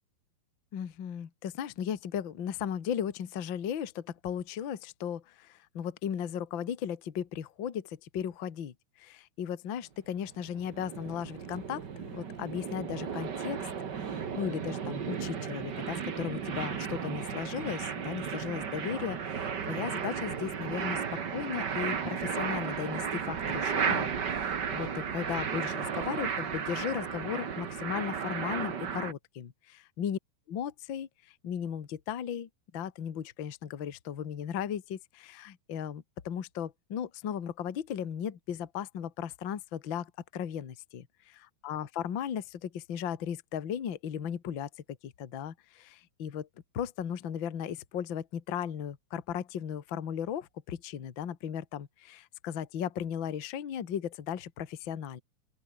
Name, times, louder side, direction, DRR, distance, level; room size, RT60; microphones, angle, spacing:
voice 1, 0.7-13.6 14.0-29.5 30.0-30.2 30.5-31.1 31.4-41.1 41.6-44.7 45.0-46.5 46.7-55.2, left 9 dB, 50° left, 1.5 m, -36 dB
sound 1, 10.2-29.1, right 7 dB, 55° right, 1.2 m, -34 dB
open air
omnidirectional pair, 4.7 m